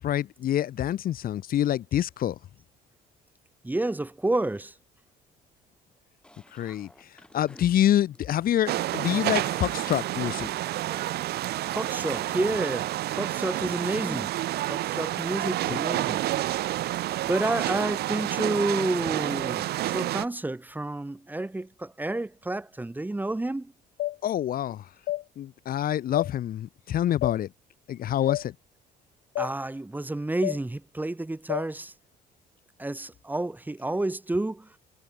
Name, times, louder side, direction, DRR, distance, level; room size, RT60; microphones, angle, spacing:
voice 1, 0.0-2.4 6.5-7.1 7.3-10.5 24.2-24.9 25.4-27.5 27.9-28.5, left 11 dB, 60° left, 2.2 m, -26 dB
voice 2, 3.6-4.7 11.7-14.3 14.7-16.3 17.3-23.7 29.4-31.9 32.8-34.7, right 2 dB, 10° right, 3.6 m, -30 dB
sound 1, 6.2-18.4, left 1 dB, 5° left, 7.9 m, -51 dB
sound 2, 8.7-20.2, right 15 dB, 70° right, 1.9 m, -29 dB
sound 3, 24.0-24.2 25.1-25.2 26.1-26.3 27.2-27.4 28.3-28.4 29.4-29.5 30.4-30.6 31.5-31.7, left 16 dB, 75° left, 2.5 m, -29 dB
cardioid pair, 110°, 17 cm